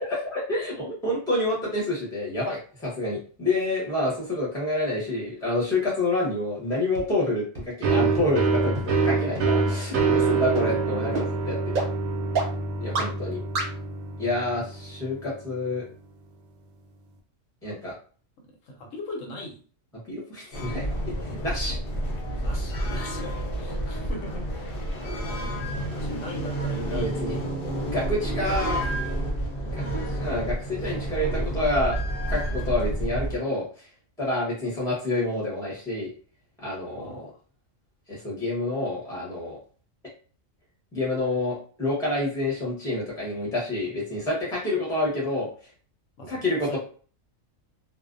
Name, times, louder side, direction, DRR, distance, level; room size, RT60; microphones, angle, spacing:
voice 1, 0.0-11.7 12.8-13.4 14.2-15.9 17.6-17.9 20.1-20.8 21.2-21.8 22.3-22.5 26.9-27.3 27.9-28.8 29.6-32.0 32.3-33.9 34.2-36.1 36.6-37.3 38.1-39.6 40.9-45.5 46.2-46.8, left 2 dB, 5° left, -4 dB, 0.7 m, -28 dB
sound 1, 6.9-7.0 7.5-7.6 8.1-8.2 8.7-8.8 9.3-9.4 9.9-10.0 10.5-10.6 11.1-11.2 11.7-11.8 12.3-12.4 12.9-13.0 13.5-13.6, right 3 dB, 55° right, 0.6 m, -27 dB
sound 2, 7.8-15.3, right 4 dB, 75° right, 0.9 m, -26 dB
voice 2, 18.5-19.6 22.2-24.8 25.2-27.1 28.3-29.2 29.8-30.0 37.0-37.4 46.2-46.8, equal, 75° left, 2 dB, 1.1 m, -40 dB
sound 3, 20.5-33.4, right 1 dB, 55° left, 0.7 m, -30 dB
2.5 x 2.0 x 2.5 m, 0.41 s
omnidirectional pair, 1.4 m